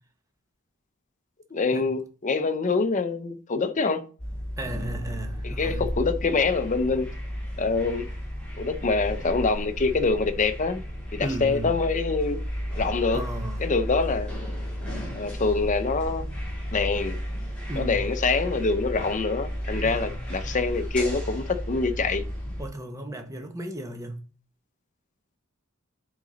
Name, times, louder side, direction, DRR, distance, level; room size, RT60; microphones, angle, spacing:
voice 1, 1.5-4.0 5.4-7.1 7.6-8.1 8.6-10.8 11.1-12.4 12.8-13.2 13.6-14.3 15.2-16.2 16.7-17.2 17.8-22.3, left 4 dB, 35° left, 0.6 m, -25 dB
sound 1, 4.2-22.7, equal, 5° left, 3.0 m, -33 dB
voice 2, 4.6-5.9 11.2-11.8 13.1-13.6 17.7-18.0 19.8-20.3 22.6-24.3, right 1 dB, 15° right, 0.9 m, -35 dB
8.1 x 3.9 x 3.9 m
head